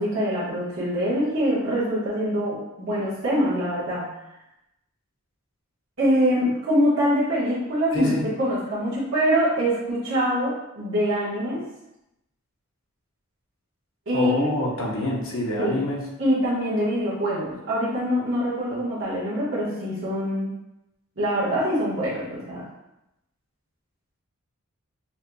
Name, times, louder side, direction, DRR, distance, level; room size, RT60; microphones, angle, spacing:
voice 1, 0.0-4.1 6.0-8.1 8.4-11.6 14.1-14.5 15.6-15.8 16.2-20.5 21.2-22.7, equal, 65° right, -10 dB, 1.4 m, -24 dB
voice 2, 7.9-8.2 14.1-16.0, left 1 dB, 70° left, -3 dB, 1.0 m, -26 dB
5.7 x 2.7 x 2.3 m, 0.88 s
head